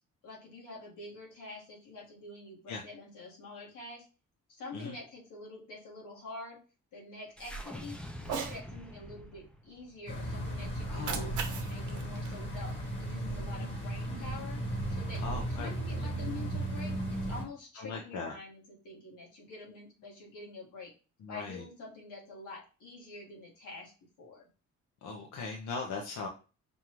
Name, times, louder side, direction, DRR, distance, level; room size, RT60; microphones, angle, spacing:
voice 1, 0.2-4.1 4.5-6.6 6.9-11.4 11.7-20.9 21.3-23.9 24.2-24.5, left 2 dB, 90° left, -3 dB, 1.7 m, -47 dB
sound 1, 7.4-11.7, equal, 5° left, 0.5 m, -46 dB
Cat, 8.2-8.6 10.8-13.2, right 6 dB, 80° right, 0.8 m, -40 dB
sound 2, 10.1-17.4, right 1 dB, 40° left, 1.2 m, -35 dB
voice 2, 10.9-11.3 15.2-15.7 17.8-18.3 21.2-21.6 25.0-26.3, left 4 dB, 70° left, 1 dB, 0.7 m, -39 dB
5.3 x 2.3 x 3.0 m, 0.34 s
cardioid pair, 90°, 30 cm